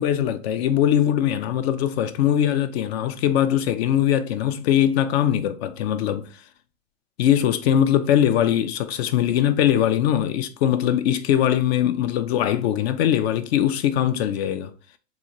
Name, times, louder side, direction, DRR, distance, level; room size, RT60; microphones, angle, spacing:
voice 1, 0.0-6.3 7.2-14.7, left 10 dB, 55° left, 0.5 m, -21 dB
3.8 x 3.1 x 2.9 m
hypercardioid pair, 130°, 39 cm